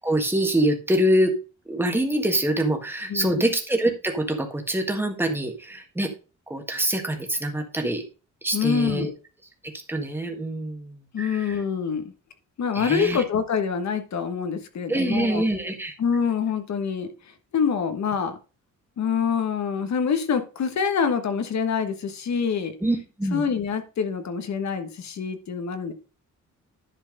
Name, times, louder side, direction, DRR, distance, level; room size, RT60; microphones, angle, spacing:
voice 1, 0.0-1.3 1.7-6.1 6.5-8.0 8.4-9.1 9.6-11.6 12.7-13.2 14.9-15.9 22.8-23.4, right 1 dB, 5° right, 3 dB, 1.6 m, -25 dB
voice 2, 3.1-3.5 8.5-9.1 11.1-12.1 12.6-15.4 16.0-18.4 19.0-22.7 23.3-25.9, left 6 dB, 60° left, 9 dB, 1.4 m, -26 dB
10.5 x 4.5 x 5.3 m, 0.33 s
wide cardioid pair, 175°, 32 cm